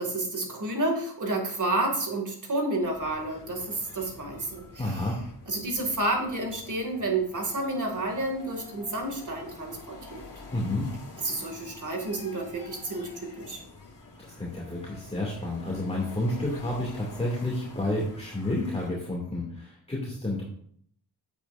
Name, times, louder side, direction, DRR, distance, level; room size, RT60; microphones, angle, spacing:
voice 1, 0.0-5.1 5.5-10.3 11.2-13.6, right 2 dB, 45° right, 3 dB, 2.3 m, -30 dB
sound 1, 2.8-18.9, left 3 dB, 50° left, 2.3 m, -47 dB
voice 2, 4.8-5.2 10.5-10.9 14.2-20.4, left 1 dB, 15° left, -4 dB, 2.4 m, -30 dB
9.1 x 8.4 x 2.6 m, 0.63 s
cardioid pair, 70°, 41 cm